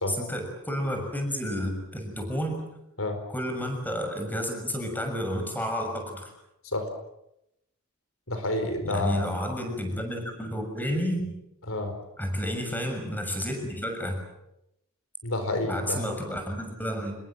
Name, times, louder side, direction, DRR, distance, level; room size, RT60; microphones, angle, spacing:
voice 1, 0.1-2.6 3.3-6.3 8.8-11.3 12.2-14.2 15.6-17.2, equal, 10° left, 4 dB, 6.8 m, -31 dB
voice 2, 8.3-9.3 11.7-11.9 15.2-16.0, left 2 dB, 70° left, 7 dB, 4.5 m, -29 dB
27.5 x 22.0 x 7.7 m, 0.84 s
head